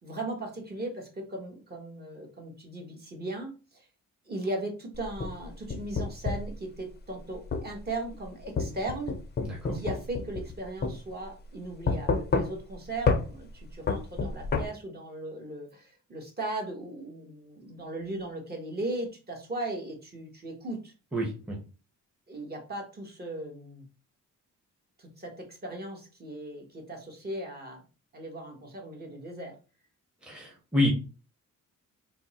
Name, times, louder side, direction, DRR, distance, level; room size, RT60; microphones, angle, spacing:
voice 1, 0.0-3.9 4.3-9.2 9.7-20.9 22.3-23.8 25.0-27.8 28.1-29.5, right 2 dB, 30° right, 1 dB, 1.2 m, -37 dB
sound 1, 4.9-6.5 7.5-7.7 8.6-10.6 10.8-11.0 11.9-12.7 13.1-13.3 13.9-14.7, left 4 dB, 35° left, 0.5 m, -28 dB
voice 2, 9.4-9.8 21.1-21.6 30.2-30.9, left 1 dB, 5° right, -1 dB, 0.8 m, -28 dB
3.5 x 2.0 x 4.1 m, 0.34 s
cardioid pair, 115°, 31 cm